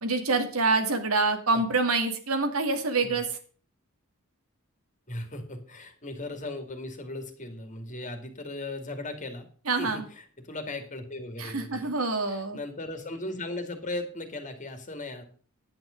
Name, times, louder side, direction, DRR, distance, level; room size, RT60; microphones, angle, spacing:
voice 1, 0.0-3.4 9.7-10.0 11.4-12.6, right 3 dB, 90° right, 6 dB, 2.2 m, -26 dB
voice 2, 5.1-9.5 9.8-11.9 12.3-15.2, left 2 dB, 35° left, 6 dB, 2.3 m, -37 dB
10.5 x 9.3 x 5.1 m, 0.44 s
head